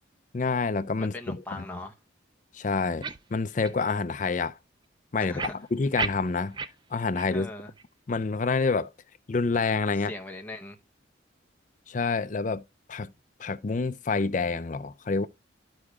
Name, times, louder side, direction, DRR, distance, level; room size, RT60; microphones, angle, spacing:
voice 1, 0.3-1.6 2.5-3.0 3.3-4.6 5.1-6.6 6.9-7.5 8.1-8.9 9.3-10.1 11.9-12.6 12.9-13.1 13.4-15.3, left 4 dB, 40° left, 0.4 m, -27 dB
voice 2, 1.0-1.9 5.2-5.6 7.3-7.7 9.9-10.8, left 2 dB, 10° left, 0.8 m, -40 dB
sound 1, 3.0-3.2 3.6-3.8 4.2-4.3 5.4-6.7 7.2-7.3 7.8-7.9, right 4 dB, 25° right, 0.3 m, -32 dB
13.5 x 4.8 x 2.3 m
head